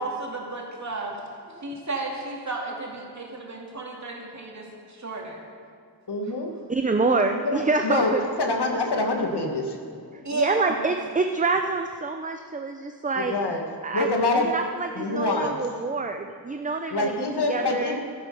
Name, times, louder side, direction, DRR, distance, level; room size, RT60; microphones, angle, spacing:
voice 1, 0.0-5.4 10.1-10.5, right 3 dB, 40° right, -2 dB, 2.5 m, -33 dB
voice 2, 6.1-6.5 7.4-9.8 13.1-13.7 13.9-14.5 14.9-15.6 16.9-18.0, left 2 dB, 65° left, 3 dB, 1.6 m, -25 dB
voice 3, 6.7-8.2 10.1-13.3 13.8-17.1 17.5-18.0, right 3 dB, 20° right, 5 dB, 0.5 m, -26 dB
13.0 x 10.5 x 5.5 m, 2.1 s
wide cardioid pair, 85°, 44 cm